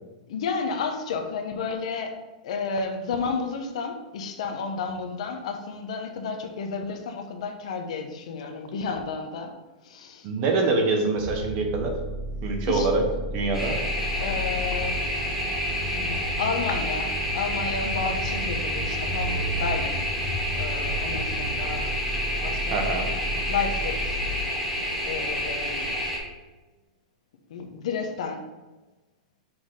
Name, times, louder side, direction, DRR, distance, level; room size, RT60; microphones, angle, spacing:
voice 1, 0.3-2.2 2.4-9.5 9.8-10.3 12.7-12.9 14.2-15.0 16.0-16.1 16.4-20.0 20.5-21.9 22.4-23.1 23.5-24.2 24.6-24.7 25.0-25.9 27.5-28.5, left 5 dB, 55° left, 5 dB, 0.9 m, -31 dB
voice 2, 10.2-11.9 12.4-13.0 13.3-13.8 22.7-23.1, right 3 dB, 25° right, 3 dB, 0.8 m, -24 dB
sound 1, 11.2-24.4, right 1 dB, 50° right, 1.0 m, -34 dB
sound 2, 13.5-26.2, equal, 10° right, 1.1 m, -29 dB
sound 3, 15.0-23.0, left 1 dB, 25° left, 1.0 m, -38 dB
6.1 x 4.0 x 4.8 m, 1.1 s
supercardioid pair, 175°, 4 cm